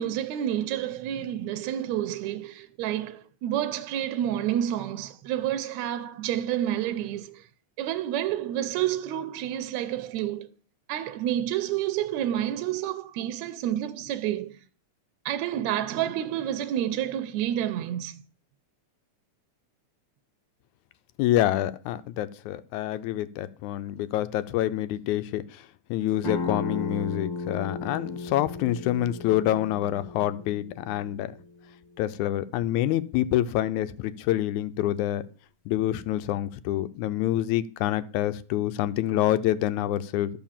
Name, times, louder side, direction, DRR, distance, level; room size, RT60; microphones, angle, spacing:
voice 1, 0.0-7.4 7.8-10.5 10.9-14.6 15.3-18.2, right 11 dB, 80° right, 1.9 m, -29 dB
voice 2, 21.2-25.6 25.9-31.4 32.0-35.3 35.7-40.3, left 13 dB, 80° left, 2.0 m, -27 dB
sound 1, 26.2-31.6, left 3 dB, 45° left, 1.9 m, -35 dB
13.0 x 5.0 x 7.3 m
omnidirectional pair, 3.5 m